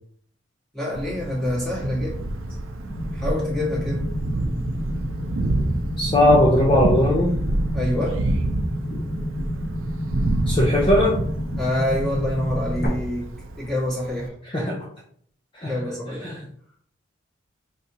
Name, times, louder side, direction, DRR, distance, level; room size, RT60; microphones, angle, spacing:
voice 1, 0.7-2.3 3.1-4.0 7.7-8.2 11.6-13.3 13.6-14.3 15.6-16.3, left 1 dB, ahead, -7 dB, 1.6 m, -26 dB
Thunder, 0.9-14.3, right 1 dB, 85° right, 0.6 m, -27 dB
sound 1, 2.9-12.9, left 1 dB, 40° left, 1.0 m, -32 dB
voice 2, 6.0-7.4 10.5-11.2 14.5-14.9 15.5-15.8 16.2-16.4, left 1 dB, 25° left, -3 dB, 0.5 m, -19 dB
5.1 x 3.1 x 2.8 m, 0.62 s
head